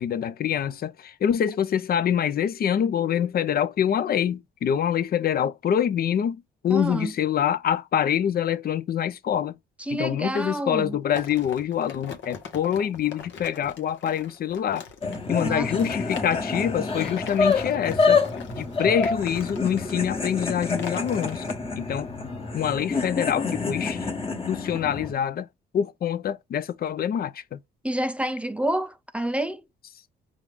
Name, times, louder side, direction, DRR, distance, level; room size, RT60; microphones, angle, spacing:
voice 1, 0.0-9.6 9.9-14.9 15.3-18.2 18.6-21.5 21.8-22.1 22.5-24.2 24.5-25.5 25.7-27.6, left 9 dB, 50° left, 0.5 m, -25 dB
voice 2, 6.7-7.1 9.9-11.0 15.4-15.9 27.8-29.6, right 1 dB, 5° right, 0.5 m, -28 dB
sound 1, 11.1-21.5, left 6 dB, 70° left, 1.0 m, -41 dB
sound 2, 15.0-25.1, left 4 dB, 30° left, 1.3 m, -27 dB
4.8 x 2.5 x 3.5 m
cardioid pair, 90°, 20 cm